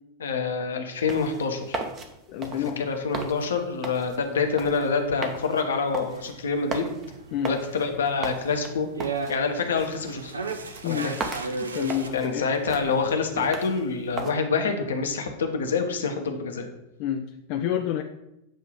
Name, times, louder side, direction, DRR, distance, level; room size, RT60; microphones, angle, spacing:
voice 1, 0.2-1.8 2.5-6.9 7.5-8.9 9.3-10.3 10.8-11.0 12.1-16.7, left 5 dB, 65° left, 5 dB, 0.8 m, -26 dB
sound 1, 0.9-14.3, right 3 dB, 30° right, 0.8 m, -38 dB
voice 2, 2.3-2.9 7.3-7.5 10.8-11.1 11.6-12.5 17.0-18.0, left 10 dB, 45° left, 5 dB, 0.4 m, -29 dB
sound 2, 6.1-12.1, right 4 dB, 75° right, 0.6 m, -35 dB
7.6 x 2.7 x 5.1 m, 0.87 s
figure-of-eight pair, 90°, 0 cm